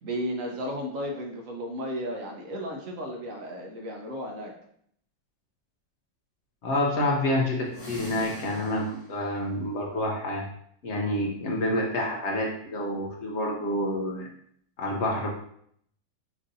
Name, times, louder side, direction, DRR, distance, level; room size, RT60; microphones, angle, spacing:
voice 1, 0.0-4.5, equal, 60° right, 1 dB, 0.9 m, -34 dB
voice 2, 6.6-10.5 10.8-14.3 14.8-15.3, left 1 dB, 80° left, -1 dB, 0.6 m, -28 dB
sound 1, 7.6-9.3, left 1 dB, 35° left, 1.6 m, -42 dB
6.1 x 2.7 x 2.6 m, 0.66 s
omnidirectional pair, 2.0 m